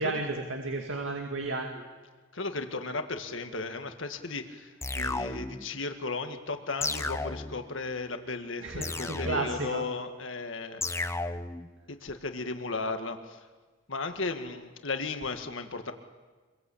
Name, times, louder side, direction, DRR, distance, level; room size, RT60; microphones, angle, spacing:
voice 1, 0.0-1.8 8.6-9.8, right 2 dB, 70° right, 3 dB, 2.2 m, -33 dB
voice 2, 2.3-11.0 11.9-13.4 13.9-15.9, left 3 dB, 70° left, 7 dB, 1.8 m, -35 dB
sound 1, 4.8-5.7 6.8-7.7 8.8-9.7 10.8-11.7, left 2 dB, 15° left, 0.9 m, -33 dB
25.5 x 22.5 x 8.6 m, 1.3 s
head